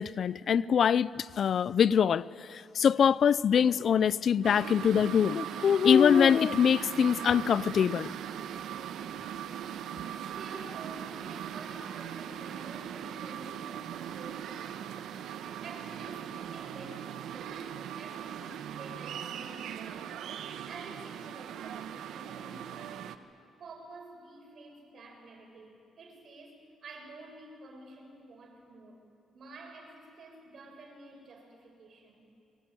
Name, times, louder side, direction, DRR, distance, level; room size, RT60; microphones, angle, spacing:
voice 1, 0.0-8.1, left 7 dB, 55° left, 18 dB, 0.6 m, -24 dB
sound 1, 4.4-23.2, right 9 dB, 80° right, 1.3 m, -39 dB
voice 2, 10.1-15.1 15.6-20.2 20.7-23.1 23.6-29.0 29.3-32.3, right 2 dB, 55° right, 2 dB, 7.3 m, -49 dB
27.5 x 23.5 x 9.1 m, 2.7 s
cardioid pair, 90°, 0 cm